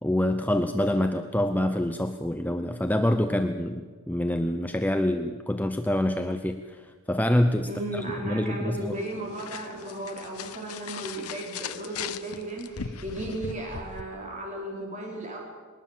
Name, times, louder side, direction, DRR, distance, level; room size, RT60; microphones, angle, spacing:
voice 1, 0.0-9.0, left 1 dB, 5° left, 7 dB, 0.6 m, -26 dB
voice 2, 7.7-15.4, right 1 dB, 35° right, -1 dB, 4.4 m, -35 dB
sound 1, 8.9-14.0, left 6 dB, 80° left, 0.9 m, -39 dB
21.5 x 19.0 x 7.4 m, 1.5 s
head